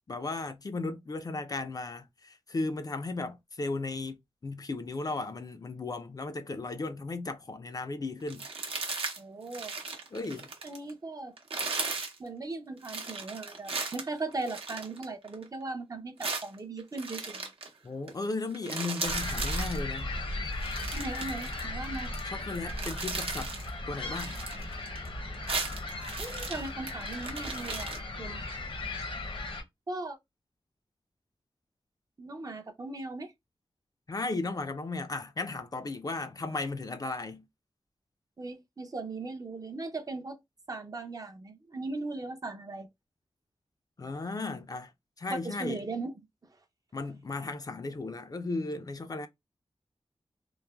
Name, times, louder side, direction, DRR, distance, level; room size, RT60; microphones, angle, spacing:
voice 1, 0.1-8.5 10.1-10.5 17.8-20.1 21.2-21.3 22.3-23.5 23.9-24.4 34.1-37.4 44.0-44.9 45.2-45.8 46.9-49.3, left 3 dB, 40° left, 0.4 m, -35 dB
sound 1, 8.3-9.2 9.5-10.9 11.4-12.2 12.8-15.5 16.2-17.7 18.1-18.2 18.5-19.8 20.5-22.2 22.5-23.7 24.0-25.1 25.3-28.0, right 3 dB, 75° right, 0.8 m, -36 dB
voice 2, 9.2-9.7 10.6-11.3 12.2-17.5 20.9-22.1 26.2-28.4 29.9-30.2 32.2-33.3 38.4-40.4 40.7-42.9 45.3-46.2, right 3 dB, 40° right, 0.5 m, -38 dB
sound 2, 19.0-29.6, left 2 dB, 65° left, 0.7 m, -37 dB
3.1 x 2.0 x 2.2 m
wide cardioid pair, 90°, 10 cm